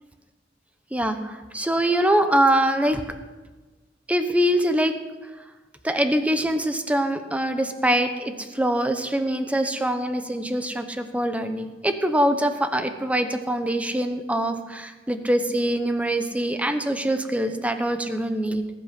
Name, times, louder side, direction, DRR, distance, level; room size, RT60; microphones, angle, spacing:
voice 1, 0.9-3.1 4.1-5.0 5.8-18.6, right 1 dB, 10° right, 8 dB, 0.9 m, -24 dB
19.0 x 8.4 x 5.9 m, 1.2 s
head